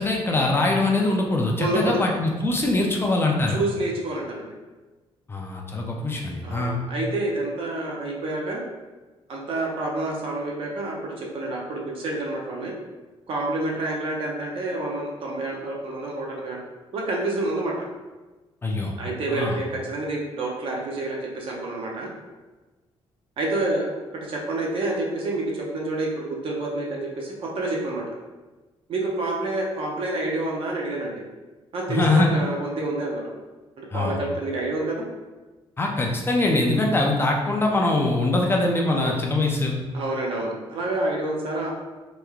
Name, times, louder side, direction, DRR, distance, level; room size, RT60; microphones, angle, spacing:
voice 1, 0.0-3.6 5.3-6.8 18.6-18.9 19.3-19.6 31.9-32.3 33.9-34.2 35.8-39.8, left 2 dB, 20° left, 0 dB, 0.4 m, -23 dB
voice 2, 1.6-2.0 3.5-4.5 6.4-8.6 9.3-12.7 13.3-16.6 16.9-17.7 19.0-22.1 23.4-23.9 24.1-28.0 28.9-31.1 31.7-33.3 33.8-35.0 38.9-39.2 39.9-41.7, right 2 dB, 60° right, -1 dB, 0.7 m, -28 dB
3.3 x 3.1 x 2.4 m, 1.2 s
cardioid pair, 140°, 11 cm